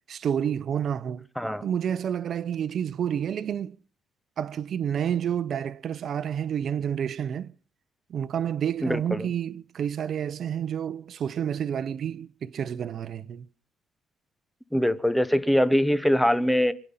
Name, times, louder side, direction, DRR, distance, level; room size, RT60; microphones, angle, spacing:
voice 1, 0.1-1.3 1.6-3.8 4.4-7.5 8.1-13.5, right 9 dB, 60° right, 0.7 m, -29 dB
voice 2, 1.4-1.7 8.8-9.3 14.7-16.7, equal, ahead, 1.1 m, -23 dB
25.0 x 10.0 x 5.6 m
cardioid pair, 90°, 0 cm